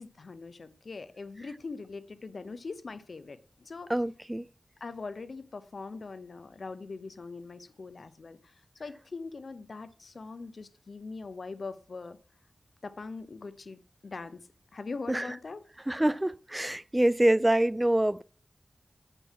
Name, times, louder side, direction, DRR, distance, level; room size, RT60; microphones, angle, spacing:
voice 1, 0.0-3.9 4.8-8.5 8.8-12.2 12.8-14.4 14.7-15.6, left 4 dB, 70° left, 0.8 m, -42 dB
voice 2, 3.9-4.5 15.1-15.3 15.9-18.2, right 1 dB, 15° right, 0.3 m, -25 dB
8.5 x 5.4 x 5.7 m
cardioid pair, 55°, 0 cm